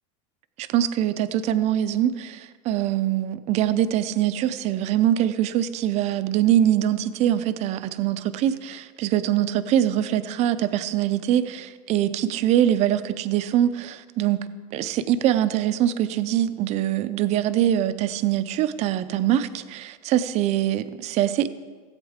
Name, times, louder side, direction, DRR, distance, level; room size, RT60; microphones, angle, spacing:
voice 1, 0.6-14.5 14.7-21.5, right 11 dB, 40° right, 12 dB, 0.5 m, -23 dB
17.0 x 8.1 x 3.6 m, 1.5 s
supercardioid pair, 145°, 17 cm